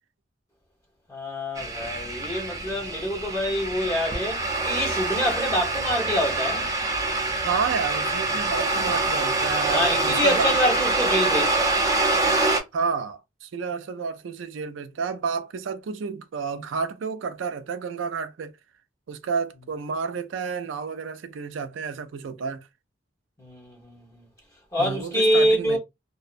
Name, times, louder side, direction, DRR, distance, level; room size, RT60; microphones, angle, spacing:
voice 1, 1.1-6.7 9.7-11.8 23.4-24.3 24.7-25.8, equal, 15° left, 1.0 m, -26 dB
sound 1, 1.6-12.6, right 2 dB, 20° right, 0.5 m, -25 dB
voice 2, 7.4-10.6 12.7-18.5 19.1-22.7 24.8-25.8, right 5 dB, 90° right, 0.4 m, -30 dB
2.6 x 2.1 x 2.5 m
head